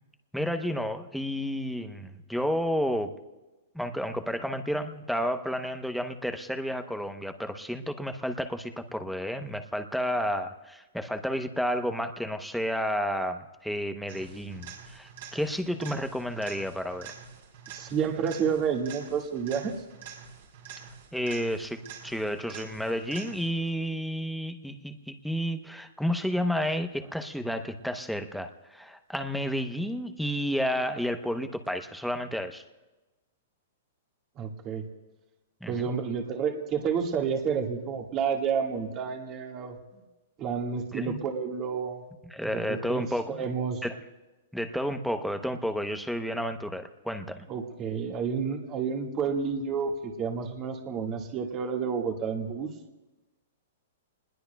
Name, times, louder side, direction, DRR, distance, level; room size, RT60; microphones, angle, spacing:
voice 1, 0.3-3.2 3.7-17.1 21.1-32.6 35.6-35.9 40.9-41.2 42.3-43.4 43.8-43.9 44.5-47.4, equal, ahead, 7 dB, 0.8 m, -31 dB
sound 1, 14.1-23.7 31.7-31.8, right 7 dB, 65° right, 3.9 m, -46 dB
voice 2, 17.7-19.7 34.3-34.8 35.7-39.8 40.4-42.0 42.5-43.8 47.5-52.7, right 6 dB, 30° right, 3 dB, 1.8 m, -30 dB
29.0 x 20.5 x 2.3 m, 1.1 s
hypercardioid pair, 150°, 0 cm